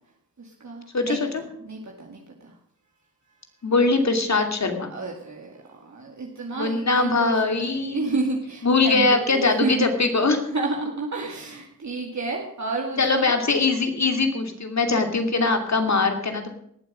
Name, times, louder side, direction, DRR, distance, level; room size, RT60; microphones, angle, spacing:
voice 1, 0.4-1.2 1.6-2.5 4.9-9.9 10.5-13.3, right 3 dB, 55° right, 0 dB, 2.4 m, -31 dB
voice 2, 0.9-1.3 3.6-4.9 6.5-8.1 8.6-10.4 13.0-16.5, left 3 dB, 50° left, 5 dB, 2.8 m, -22 dB
19.0 x 7.6 x 6.3 m, 0.71 s
cardioid pair, 50°, 34 cm